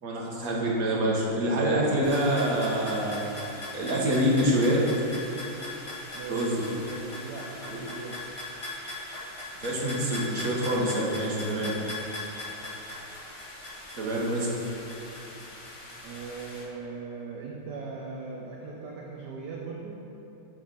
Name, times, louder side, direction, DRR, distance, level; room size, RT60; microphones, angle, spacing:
voice 1, 0.0-3.2 3.7-4.8 6.3-6.6 9.6-11.7 13.9-14.5, right 1 dB, 45° right, -3 dB, 1.7 m, -26 dB
sound 1, 2.0-16.6, left 2 dB, 20° left, 1.1 m, -40 dB
voice 2, 6.1-8.3 16.0-20.0, right 4 dB, 65° right, -2 dB, 1.2 m, -39 dB
11.5 x 4.4 x 5.5 m, 3.0 s
omnidirectional pair, 2.2 m